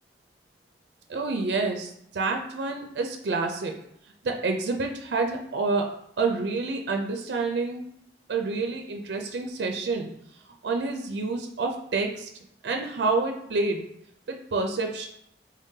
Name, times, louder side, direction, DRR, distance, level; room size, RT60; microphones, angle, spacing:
voice 1, 1.1-3.8 4.2-5.9 6.2-7.8 8.3-10.1 10.6-12.3 12.6-13.9 14.3-15.1, right 3 dB, 70° right, 3 dB, 0.4 m, -28 dB
3.6 x 3.5 x 2.7 m, 0.73 s
head